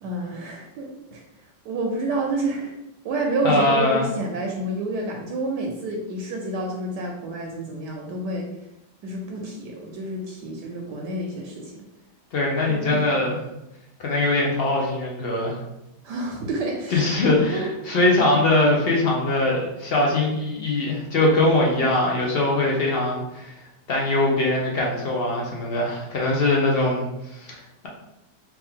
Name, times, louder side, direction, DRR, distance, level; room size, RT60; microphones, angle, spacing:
voice 1, 0.0-1.2 1.6-2.7 3.0-8.5 9.0-11.9 12.9-13.0 16.0-17.1 17.5-17.7, right 2 dB, 75° right, 0 dB, 1.1 m, -29 dB
voice 2, 3.4-4.1 12.3-13.4 14.0-15.6 16.9-23.5 23.9-27.6, left 2 dB, 65° left, -2 dB, 0.6 m, -22 dB
3.4 x 3.1 x 3.5 m, 0.92 s
omnidirectional pair, 2.0 m